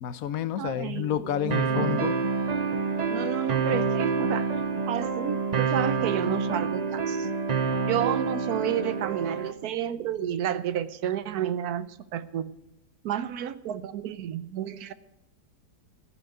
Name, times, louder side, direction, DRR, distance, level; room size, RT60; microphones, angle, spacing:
voice 1, 0.0-2.2, left 10 dB, 65° left, 14 dB, 1.1 m, -29 dB
voice 2, 0.6-2.1 3.1-4.5 4.9-7.3 7.8-12.5 13.0-14.9, right 10 dB, 70° right, 15 dB, 1.2 m, -31 dB
sound 1, 1.5-9.5, right 5 dB, 45° right, 0.5 m, -27 dB
15.0 x 6.2 x 9.3 m, 0.91 s
omnidirectional pair, 1.7 m